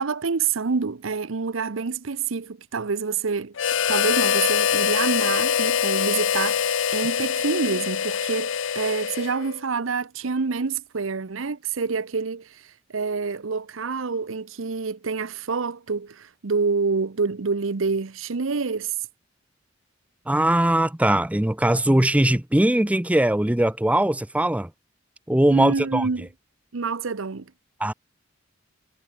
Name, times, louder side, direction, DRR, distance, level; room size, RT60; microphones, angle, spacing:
voice 1, 0.0-3.5 3.9-18.9 25.5-26.3 26.7-27.5, right 4 dB, 90° right, 0.8 m, -27 dB
Harmonica, 3.6-9.6, left 7 dB, 70° left, 0.7 m, -24 dB
voice 2, 20.3-24.7 25.3-26.1 27.8-27.9, right 1 dB, 5° right, 0.6 m, -20 dB
head